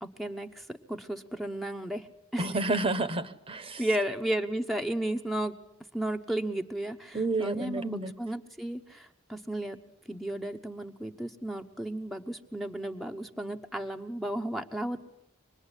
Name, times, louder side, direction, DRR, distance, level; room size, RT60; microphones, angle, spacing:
voice 1, 0.0-2.1 2.3-2.6 3.8-5.5 5.9-9.8 10.1-15.1, right 1 dB, ahead, 5 dB, 1.0 m, -34 dB
voice 2, 2.4-3.8 7.1-8.1, right 2 dB, 25° right, 13 dB, 1.1 m, -30 dB
25.5 x 20.5 x 9.8 m, 0.75 s
head